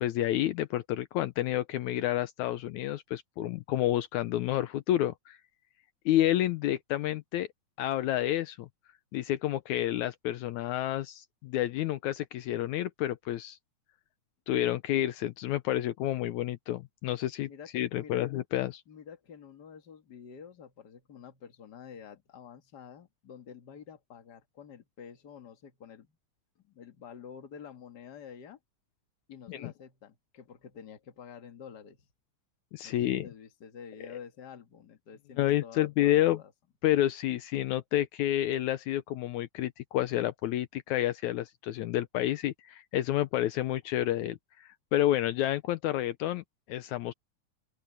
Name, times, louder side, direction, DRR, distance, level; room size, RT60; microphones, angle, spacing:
voice 1, 0.0-5.4 6.1-7.5 7.8-8.7 9.1-13.6 14.5-18.8 29.5-29.7 32.7-33.3 35.4-36.4 36.8-47.1, left 13 dB, 75° left, 2.0 m, -29 dB
voice 2, 17.5-18.2 18.9-26.2 26.6-28.6 29.3-32.1 32.8-36.5, left 7 dB, 40° left, 2.0 m, -49 dB
open air
omnidirectional pair, 3.5 m